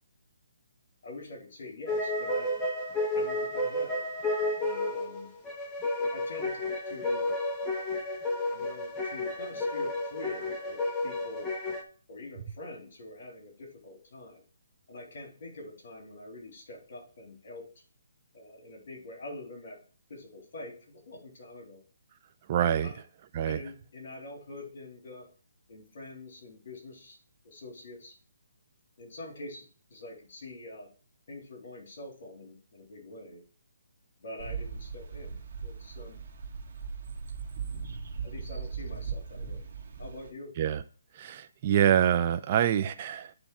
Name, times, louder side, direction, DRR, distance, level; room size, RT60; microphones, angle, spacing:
voice 1, 1.0-2.5 3.1-4.1 4.6-5.3 6.1-7.3 8.5-11.5 12.1-14.4 14.9-17.7 18.3-19.8 20.1-21.8 22.8-23.0 23.4-25.3 25.7-27.2 27.4-28.1 29.0-29.6 29.9-30.9 31.3-33.4 34.2-36.2 38.2-39.6 40.0-40.5, left 2 dB, 60° left, -1 dB, 3.2 m, -45 dB
sound 1, 1.9-11.8, left 2 dB, 10° left, 1.1 m, -31 dB
voice 2, 22.5-22.9 23.3-23.6 40.6-40.8 41.1-43.3, right 10 dB, 35° right, 9 dB, 0.7 m, -26 dB
sound 2, 34.4-40.3, right 5 dB, 55° right, 2.1 m, -38 dB
9.5 x 3.4 x 4.7 m, 0.38 s
hypercardioid pair, 155°, 0 cm